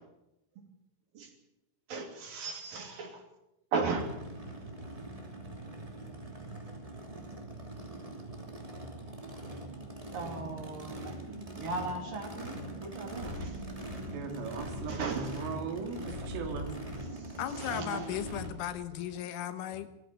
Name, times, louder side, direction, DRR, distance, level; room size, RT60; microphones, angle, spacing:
voice 1, 1.9-3.2 3.7-4.2 10.1-13.6 14.9-15.3 16.0-16.2 17.1-17.3 17.6-18.1, right 4 dB, 50° right, 4 dB, 4.3 m, -37 dB
Race car auto racing / Idling / Accelerating revving vroom, 4.0-18.5, right 1 dB, 15° right, 1.2 m, -43 dB
sound 1, 13.1-19.1, left 1 dB, 60° left, 2.6 m, -46 dB
voice 2, 14.1-16.8, right 5 dB, 85° right, 5 dB, 5.3 m, -38 dB
voice 3, 17.4-19.9, left 11 dB, 80° left, 10 dB, 3.7 m, -36 dB
20.0 x 14.5 x 9.4 m, 0.87 s
omnidirectional pair, 5.6 m